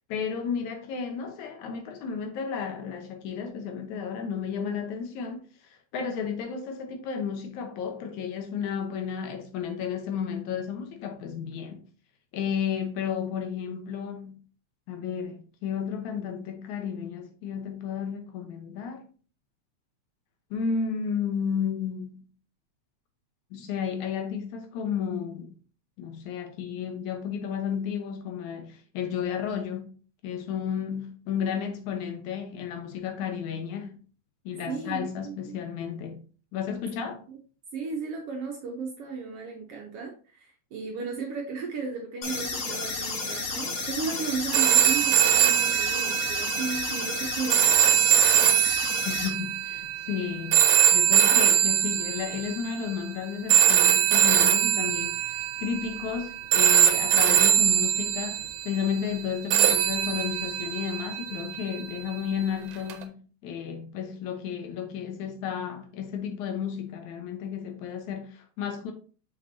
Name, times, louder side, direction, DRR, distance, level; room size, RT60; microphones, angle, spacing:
voice 1, 0.1-5.5 5.9-11.8 12.3-14.4 14.9-19.1 20.5-22.3 23.5-25.5 26.0-29.9 30.2-34.0 34.5-36.2 36.5-37.3 49.0-50.6 50.9-63.2 63.4-68.9, left 7 dB, 80° left, 2.4 m, -32 dB
voice 2, 34.7-35.1 35.5-35.6 37.3-37.4 37.7-48.0, right 5 dB, 70° right, 1.6 m, -35 dB
sound 1, 42.2-49.3, left 3 dB, 60° left, 0.8 m, -32 dB
sound 2, 44.5-52.7 53.5-56.2 56.5-58.6 59.5-61.7 62.9-63.0, right 10 dB, 85° right, 2.2 m, -22 dB
6.0 x 5.8 x 2.7 m
omnidirectional pair, 3.3 m